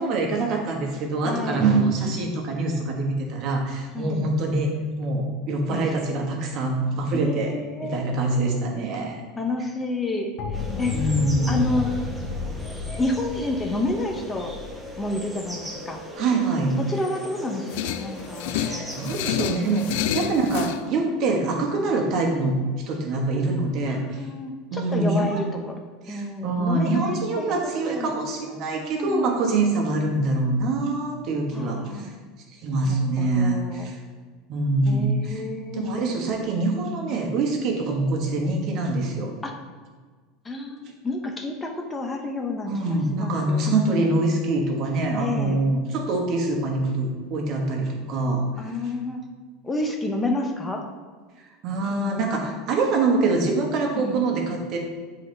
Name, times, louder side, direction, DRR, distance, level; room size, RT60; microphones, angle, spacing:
voice 1, 0.0-7.5 7.8-9.2 10.9-11.7 16.1-16.8 18.6-24.2 24.7-25.4 26.0-32.1 32.5-34.0 34.5-35.4 35.7-39.3 42.6-48.7 51.6-54.8, right 2 dB, 50° right, 1 dB, 1.2 m, -24 dB
voice 2, 1.2-1.6 3.9-4.3 5.7-5.8 7.1-8.1 9.4-11.1 11.5-11.9 13.0-14.6 15.0-16.0 16.8-18.8 19.9-20.4 23.9-25.8 26.1-27.5 27.8-28.2 29.0-29.5 31.5-32.2 32.8-33.9 34.9-36.2 39.4-39.5 40.4-42.7 43.1-43.7 45.2-45.6 48.6-49.2 49.6-50.8 53.9-54.2, left 2 dB, 15° left, 3 dB, 0.6 m, -30 dB
sound 1, 10.4-16.1, left 4 dB, 55° left, 0.8 m, -33 dB
sound 2, 10.5-20.3, equal, 10° right, 0.9 m, -39 dB
sound 3, 17.7-20.8, left 10 dB, 75° left, 0.3 m, -29 dB
7.7 x 3.9 x 3.3 m, 1.5 s
supercardioid pair, 135°, 0 cm